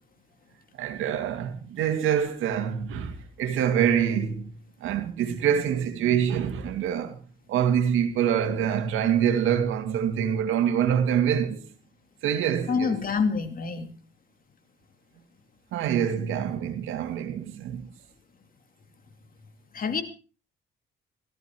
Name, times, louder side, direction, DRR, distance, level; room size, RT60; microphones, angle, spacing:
voice 1, 0.8-4.5 4.8-7.2 7.5-11.6 12.2-13.0 15.7-17.8, right 8 dB, 85° right, 2.3 m, -25 dB
voice 2, 12.7-13.9 19.7-20.0, left 5 dB, 45° left, 2.8 m, -26 dB
17.5 x 14.0 x 4.6 m
cardioid pair, 90°, 20 cm